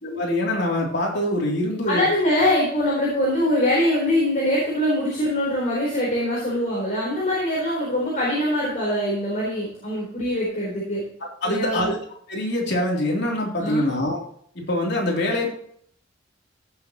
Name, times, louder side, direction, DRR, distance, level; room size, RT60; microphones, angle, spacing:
voice 1, 0.0-2.0 11.4-12.0 12.3-14.2 14.5-15.5, left 1 dB, 60° left, -2 dB, 3.4 m, -24 dB
voice 2, 1.9-11.0 11.4-11.9 13.6-13.8, left 1 dB, 40° left, -5 dB, 4.3 m, -23 dB
16.5 x 7.4 x 3.1 m, 0.63 s
head